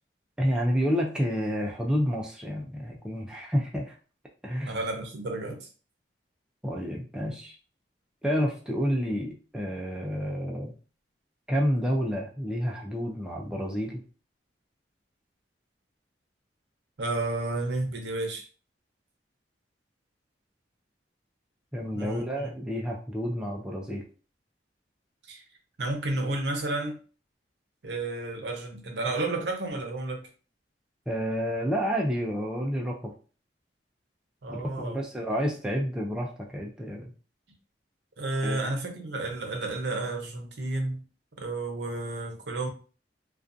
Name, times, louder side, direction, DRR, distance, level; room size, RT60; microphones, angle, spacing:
voice 1, 0.4-4.0 4.4-4.8 6.6-7.6 8.2-10.8 11.5-14.0 21.7-24.0 31.1-33.1 34.5-37.1 38.4-38.6, equal, 5° right, -1 dB, 0.3 m, -29 dB
voice 2, 4.6-5.7 17.0-18.4 21.9-22.5 25.3-25.4 25.8-27.0 27.8-30.3 34.4-35.0 38.2-41.0 41.4-42.7, right 2 dB, 70° right, 3 dB, 0.7 m, -31 dB
2.5 x 2.2 x 2.5 m, 0.37 s
head